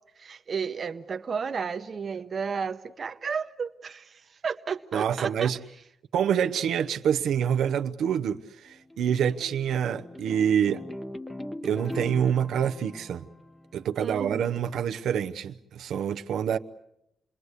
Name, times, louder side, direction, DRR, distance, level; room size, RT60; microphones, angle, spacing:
voice 1, 0.2-4.1 4.4-5.5 14.0-14.4, right 6 dB, 40° right, 0.9 m, -32 dB
voice 2, 4.9-5.6 6.1-10.8 11.6-13.2 13.7-16.6, right 8 dB, 85° right, 0.9 m, -26 dB
sound 1, 8.4-14.0, left 1 dB, 5° left, 0.9 m, -41 dB
28.5 x 21.0 x 8.2 m
cardioid pair, 145°, 0 cm